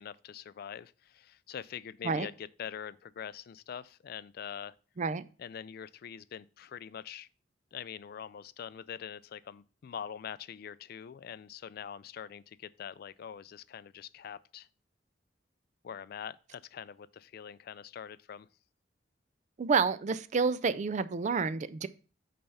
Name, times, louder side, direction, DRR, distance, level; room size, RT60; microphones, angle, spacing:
voice 1, 0.0-4.7 5.4-7.3 7.7-14.7 15.8-18.5, left 8 dB, 55° left, 0.3 m, -44 dB
voice 2, 19.6-21.9, right 5 dB, 40° right, 0.4 m, -29 dB
8.7 x 3.4 x 5.5 m
head